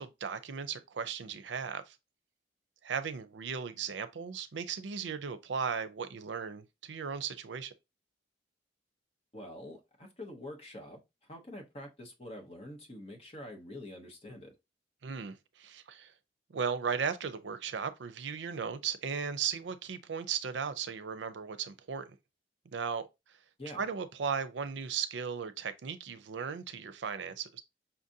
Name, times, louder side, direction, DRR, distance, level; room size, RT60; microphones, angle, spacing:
voice 1, 0.0-2.0 2.8-7.7 15.0-16.1 16.5-22.1 22.7-23.1 23.8-27.6, right 6 dB, 85° right, 0.5 m, -36 dB
voice 2, 9.3-14.5 23.6-23.9, left 1 dB, 35° left, 1.0 m, -46 dB
5.6 x 2.5 x 2.7 m
head